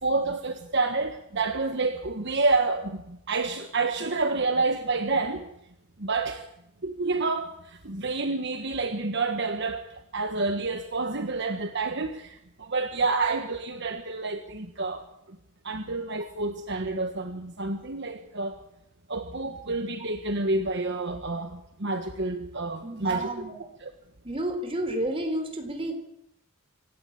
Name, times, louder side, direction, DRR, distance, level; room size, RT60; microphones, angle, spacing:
voice 1, 0.0-5.5 6.0-6.5 6.8-15.1 15.6-18.5 19.1-23.5 23.8-23.9, right 3 dB, 55° right, 7 dB, 1.4 m, -29 dB
voice 2, 22.8-23.7 24.2-25.9, right 1 dB, 25° right, 5 dB, 3.8 m, -31 dB
26.5 x 12.0 x 8.7 m, 0.78 s
head